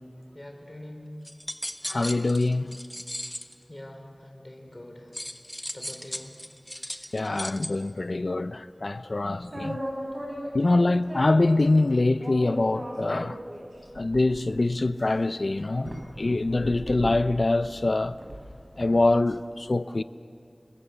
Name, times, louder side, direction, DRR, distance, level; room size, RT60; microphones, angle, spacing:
voice 1, 0.3-1.1 3.7-5.1 5.7-6.3, left 1 dB, 35° left, 4.0 m, -44 dB
sound 1, 1.2-3.5 5.1-7.7, equal, 10° left, 1.4 m, -37 dB
voice 2, 1.9-2.8 7.1-9.8 10.5-13.4 14.0-18.1 18.8-20.0, left 2 dB, 70° left, 0.7 m, -24 dB
sound 2, 9.4-11.5 12.2-19.2, equal, 50° right, 7.4 m, -38 dB
29.5 x 21.5 x 7.0 m
wide cardioid pair, 40°, 0 cm